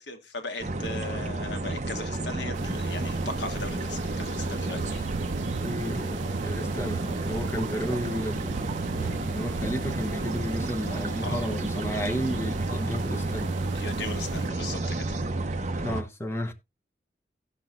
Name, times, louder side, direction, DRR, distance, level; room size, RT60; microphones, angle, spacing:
voice 1, 0.0-5.0 10.8-11.5 13.7-15.1, left 3 dB, 75° left, 1.3 m, -38 dB
sound 1, 0.6-16.0, right 2 dB, 40° right, 0.8 m, -31 dB
sound 2, 2.5-14.5, right 6 dB, 85° right, 0.4 m, -39 dB
voice 2, 5.6-13.5 15.7-16.5, equal, 15° left, 0.9 m, -33 dB
17.0 x 6.1 x 2.4 m
head